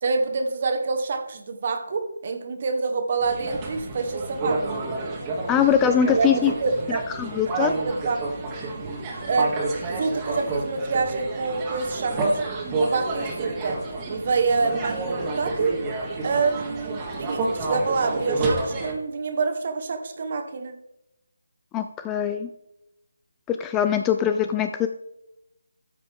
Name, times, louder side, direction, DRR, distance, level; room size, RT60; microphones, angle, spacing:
voice 1, 0.0-4.9 6.1-7.1 7.5-8.3 9.3-12.4 12.8-15.8 16.2-20.8, right 4 dB, 40° right, 7 dB, 1.2 m, -27 dB
sound 1, 3.2-18.9, right 2 dB, 15° right, 1.6 m, -29 dB
voice 2, 5.5-6.5 6.9-7.7 21.7-22.5 23.5-24.9, left 8 dB, 10° left, 8 dB, 0.3 m, -22 dB
13.5 x 5.0 x 3.6 m, 0.88 s
figure-of-eight pair, 155°, 0 cm